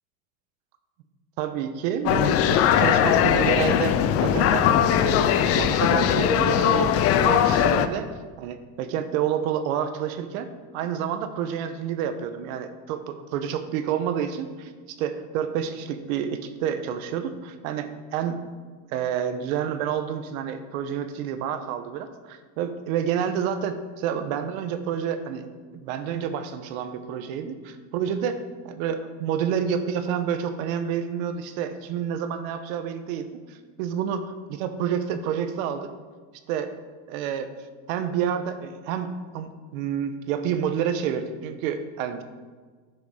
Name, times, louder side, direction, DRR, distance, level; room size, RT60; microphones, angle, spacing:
voice 1, 1.4-3.9 4.2-4.7 5.5-8.1 8.4-10.5 10.7-14.7 15.0-18.4 18.9-25.5 25.7-28.4 28.6-35.9 36.5-36.7 37.1-37.5 37.9-42.2, right 8 dB, 70° right, 9 dB, 1.2 m, -29 dB
sound 1, 2.1-7.9, left 9 dB, 35° left, 0.5 m, -20 dB
11.0 x 6.9 x 5.0 m, 1.5 s
supercardioid pair, 145°, 43 cm